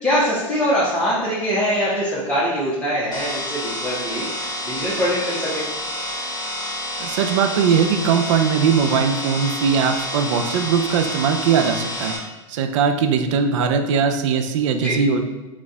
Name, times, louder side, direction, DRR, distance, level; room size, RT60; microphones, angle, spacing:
voice 1, 0.0-5.6 14.8-15.0, equal, 5° left, -11 dB, 1.0 m, -23 dB
sound 1, 3.1-12.2, left 1 dB, 20° left, 1.4 m, -29 dB
voice 2, 7.0-12.1 12.5-15.2, right 6 dB, 60° right, 6 dB, 0.4 m, -20 dB
3.8 x 2.4 x 3.9 m, 1.1 s
hypercardioid pair, 110°, 18 cm